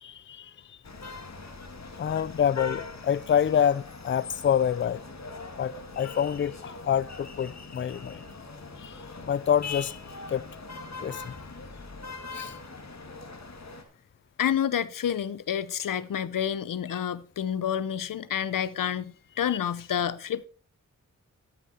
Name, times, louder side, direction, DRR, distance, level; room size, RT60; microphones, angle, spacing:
voice 1, 0.0-0.8 2.0-5.0 5.6-8.2 8.8-8.9 9.3-9.9 10.3-10.5 11.0-11.3 12.3-12.5 19.5-19.6, left 9 dB, 40° left, 0.4 m, -27 dB
sound 1, 0.8-13.8, left 4 dB, 55° left, 2.1 m, -41 dB
voice 2, 14.4-20.5, left 9 dB, 85° left, 0.7 m, -29 dB
13.5 x 7.5 x 4.3 m
cardioid pair, 65°, 32 cm